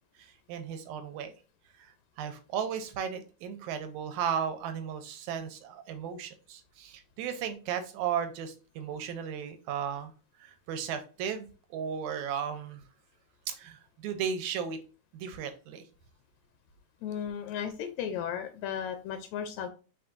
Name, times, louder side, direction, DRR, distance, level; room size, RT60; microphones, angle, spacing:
voice 1, 0.2-1.3 2.2-10.1 10.4-11.5 11.7-12.8 13.5-14.8 15.1-15.8, right 8 dB, 80° right, 8 dB, 1.8 m, -35 dB
voice 2, 17.0-19.7, left 8 dB, 80° left, 7 dB, 1.7 m, -35 dB
4.4 x 4.2 x 2.5 m, 0.34 s
omnidirectional pair, 3.6 m